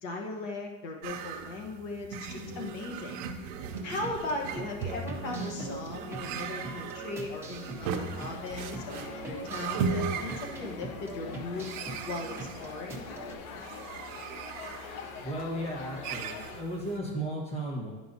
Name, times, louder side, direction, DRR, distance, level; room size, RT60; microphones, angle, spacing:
voice 1, 0.0-3.2 3.8-11.7 12.1-13.1, left 2 dB, 65° left, 2 dB, 1.2 m, -38 dB
sound 1, 1.0-17.0, right 5 dB, 45° right, 0.6 m, -38 dB
sound 2, 3.6-13.4, right 2 dB, 5° right, 0.6 m, -43 dB
sound 3, 7.8-16.6, left 6 dB, 90° left, 0.8 m, -44 dB
voice 2, 15.2-17.9, right 1 dB, 15° left, -1 dB, 1.4 m, -35 dB
10.5 x 4.8 x 2.8 m, 1.2 s
supercardioid pair, 145°, 40 cm